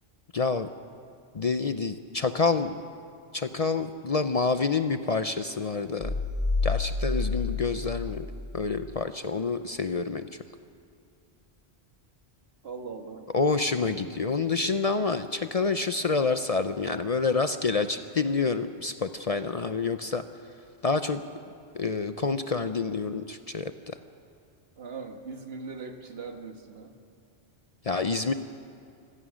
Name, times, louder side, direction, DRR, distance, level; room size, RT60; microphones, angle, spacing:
voice 1, 0.3-0.7 1.3-2.8 3.3-6.1 6.6-8.3 8.5-10.3 13.3-20.2 20.8-21.2 21.7-24.0 27.8-28.3, left 4 dB, 45° left, 10 dB, 0.6 m, -28 dB
sound 1, 6.0-8.9, left 3 dB, 25° left, 1.8 m, -29 dB
voice 2, 12.6-13.3 14.0-14.2 24.8-26.9, right 4 dB, 70° right, 5 dB, 1.7 m, -40 dB
25.5 x 16.5 x 6.3 m, 2.3 s
omnidirectional pair, 1.1 m